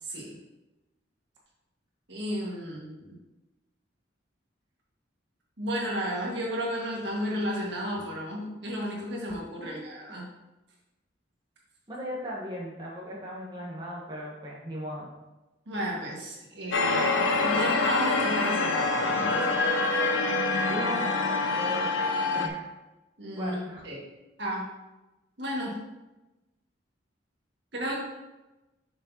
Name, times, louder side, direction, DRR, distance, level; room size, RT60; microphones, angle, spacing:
voice 1, 0.0-0.4 2.1-3.1 5.6-10.3 15.7-19.4 23.2-24.0 24.4-24.7 25.4-25.8 27.7-28.0, equal, 65° right, -3 dB, 1.7 m, -33 dB
voice 2, 11.9-15.1 20.7-21.1 21.5-21.9 22.3-22.7 23.4-23.8, equal, 25° right, -5 dB, 1.1 m, -37 dB
sound 1, 16.7-22.5, left 3 dB, 85° left, 0.7 m, -26 dB
6.6 x 5.9 x 2.8 m, 1.0 s
head